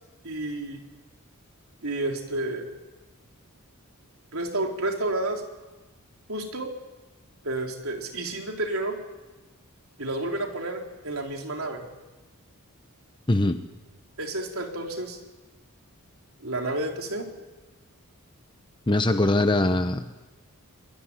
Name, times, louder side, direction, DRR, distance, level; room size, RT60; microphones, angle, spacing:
voice 1, 0.2-0.8 1.8-2.7 4.3-5.4 6.3-6.7 7.4-9.0 10.0-11.9 14.2-15.2 16.4-17.3, right 2 dB, 70° right, 2 dB, 4.3 m, -30 dB
voice 2, 13.3-13.6 18.9-20.1, left 2 dB, 20° left, 8 dB, 0.9 m, -22 dB
24.5 x 22.5 x 10.0 m, 1.2 s
head